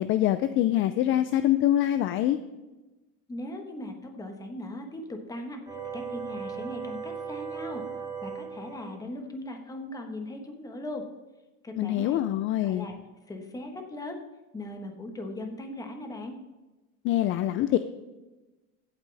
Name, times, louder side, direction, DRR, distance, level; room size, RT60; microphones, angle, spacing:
voice 1, 0.0-2.4 11.8-12.9 17.0-17.8, left 13 dB, 40° left, 12 dB, 0.4 m, -24 dB
voice 2, 3.3-5.6 5.9-7.8 8.2-11.0 11.6-12.2 12.6-13.0 13.3-14.2 14.5-16.4, left 1 dB, 10° left, 4 dB, 1.2 m, -38 dB
sound 1, 5.7-8.9, right 6 dB, 10° right, 3.4 m, -37 dB
15.5 x 8.8 x 3.4 m, 1.1 s
cardioid pair, 160°, 31 cm